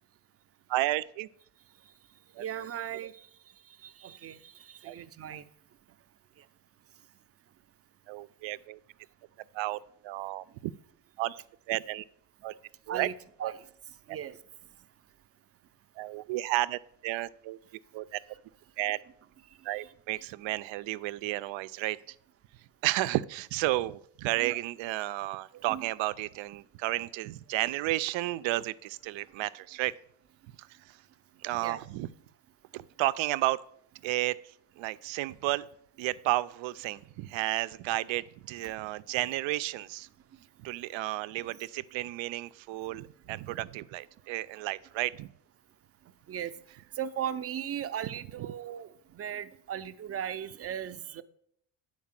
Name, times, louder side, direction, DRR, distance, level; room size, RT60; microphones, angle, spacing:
voice 1, 0.7-1.3 2.3-2.4 4.8-5.0 8.1-8.8 9.5-10.7 11.2-12.0 12.4-12.5 12.9-13.1 13.4-13.5 14.1-14.2 16.0-17.6 17.9-18.2 18.8-19.0 19.6-22.2 22.8-29.9 30.6-31.0 31.4-32.1 32.7-33.6 34.0-35.7 36.0-40.1 40.6-45.3 48.4-48.5, right 17 dB, 85° right, 15 dB, 0.6 m, -32 dB
voice 2, 2.4-3.3 3.8-5.4 12.9-13.1 13.4-13.5 14.1-14.4 24.4-24.6 25.5-25.8 31.6-31.8 46.3-46.5 47.0-51.2, right 9 dB, 35° right, 12 dB, 0.5 m, -37 dB
9.5 x 4.6 x 7.4 m, 0.68 s
cardioid pair, 125°, 44 cm